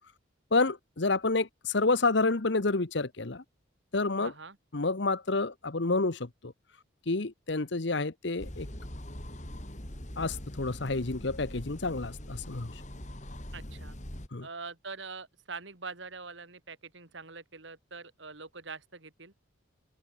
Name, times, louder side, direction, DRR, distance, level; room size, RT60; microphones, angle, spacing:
voice 1, 0.5-3.4 3.9-4.3 4.7-6.5 7.1-8.7 10.2-12.8 14.3-14.5, left 3 dB, 60° left, 1.1 m, -29 dB
voice 2, 4.2-4.6 13.5-14.0 14.4-19.3, right 4 dB, 65° right, 3.0 m, -44 dB
sound 1, 8.4-14.3, left 1 dB, 35° left, 3.2 m, -42 dB
open air
head